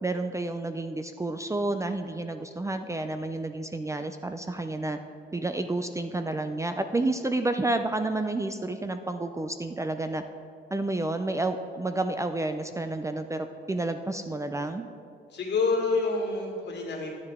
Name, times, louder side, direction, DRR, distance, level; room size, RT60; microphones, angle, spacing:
voice 1, 0.0-5.0 5.3-10.2 10.7-14.9, right 2 dB, 15° right, 8 dB, 0.4 m, -30 dB
voice 2, 15.3-17.2, left 3 dB, 60° left, 0 dB, 2.0 m, -27 dB
11.0 x 9.6 x 3.6 m, 2.4 s
cardioid pair, 90°, 20 cm